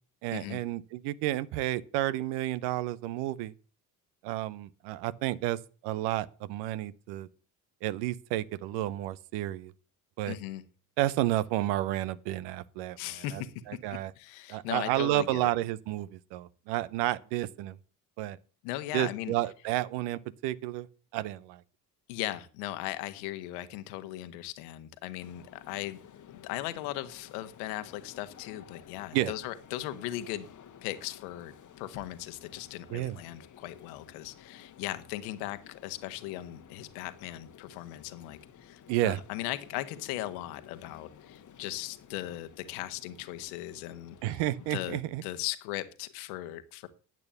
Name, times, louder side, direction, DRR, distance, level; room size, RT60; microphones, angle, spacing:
voice 1, 0.2-3.5 4.2-7.3 7.8-9.7 10.2-10.4 11.0-13.0 13.3-13.4 13.7-14.1 14.5-17.8 18.2-18.4 18.9-20.9 21.1-21.6 29.1-29.3 32.9-33.2 38.9-39.2 44.2-45.2, right 15 dB, 60° right, 0.8 m, -31 dB
voice 2, 10.3-10.6 13.0-13.5 14.2-15.5 18.6-19.3 22.1-26.0 26.3-30.5 30.8-44.4 44.7-46.9, left 14 dB, 70° left, 1.3 m, -38 dB
sound 1, 25.2-44.9, left 9 dB, 40° left, 1.2 m, -54 dB
10.5 x 8.4 x 6.9 m
figure-of-eight pair, 50°, 47 cm